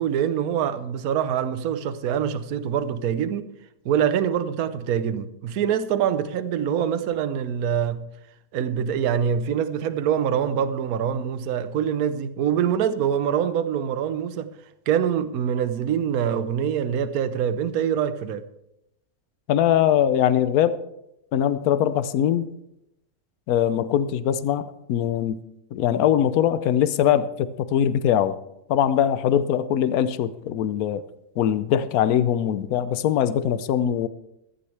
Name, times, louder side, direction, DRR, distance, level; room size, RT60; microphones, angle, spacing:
voice 1, 0.0-3.5 3.8-8.1 8.5-14.5 14.9-18.4, right 8 dB, 70° right, 1.2 m, -24 dB
voice 2, 19.5-20.8 21.3-22.5 23.5-25.4 25.7-28.4 28.7-31.0 31.4-34.1, left 10 dB, 75° left, 1.1 m, -22 dB
15.0 x 14.0 x 3.3 m
omnidirectional pair, 1.6 m